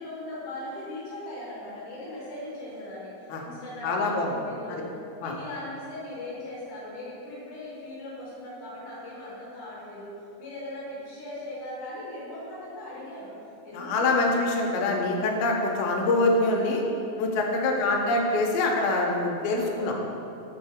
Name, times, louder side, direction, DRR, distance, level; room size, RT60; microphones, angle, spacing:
voice 1, 0.0-4.8 5.2-10.1 10.4-13.3 13.6-14.3 17.6-18.0 19.6-19.9, left 1 dB, 70° left, -6 dB, 2.2 m, -39 dB
voice 2, 3.8-4.3 4.7-4.8 5.2-5.3 13.7-16.8 17.2-20.0, left 2 dB, 85° left, 0 dB, 2.5 m, -25 dB
6.3 x 4.3 x 3.5 m, 2.7 s
omnidirectional pair, 4.2 m